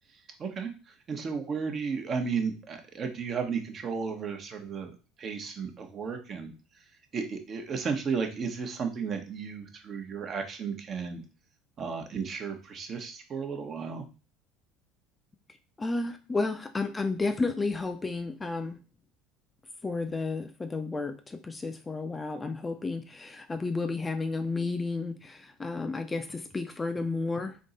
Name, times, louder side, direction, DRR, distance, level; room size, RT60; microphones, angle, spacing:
voice 1, 0.4-0.7 1.1-6.5 7.1-11.2 11.8-14.0, right 5 dB, 40° right, 4 dB, 1.0 m, -34 dB
voice 2, 15.8-18.8 19.8-27.6, left 3 dB, 20° left, 8 dB, 0.5 m, -32 dB
3.6 x 2.8 x 4.0 m, 0.34 s
hypercardioid pair, 80°, 0 cm